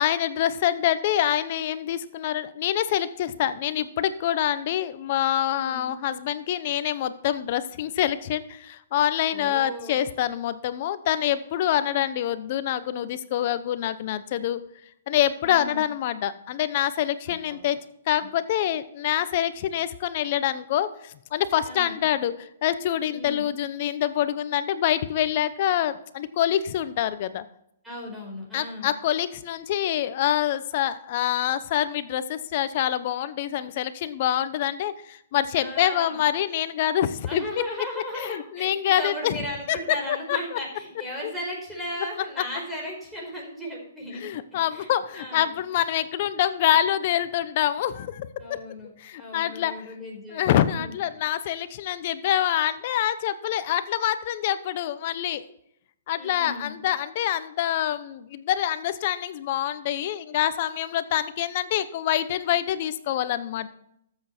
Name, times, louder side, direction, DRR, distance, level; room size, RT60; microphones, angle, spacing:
voice 1, 0.0-14.6 15.1-17.8 18.1-27.4 28.5-37.4 38.1-39.4 39.7-39.8 40.1-40.6 41.2-41.3 44.1-48.6 49.0-49.7 50.3-55.4 56.1-63.7, left 11 dB, 45° left, 13 dB, 0.9 m, -26 dB
voice 2, 5.5-5.9 9.3-10.0 15.4-15.9 17.3-17.6 18.2-18.3 21.6-22.0 23.1-23.5 27.8-28.9 35.5-36.1 37.2-44.3 44.7-45.5 48.4-48.9 49.2-50.4 50.7-51.0 56.2-56.7, equal, ahead, -4 dB, 5.1 m, -36 dB
13.5 x 7.9 x 4.4 m, 0.74 s
hypercardioid pair, 145°, 0 cm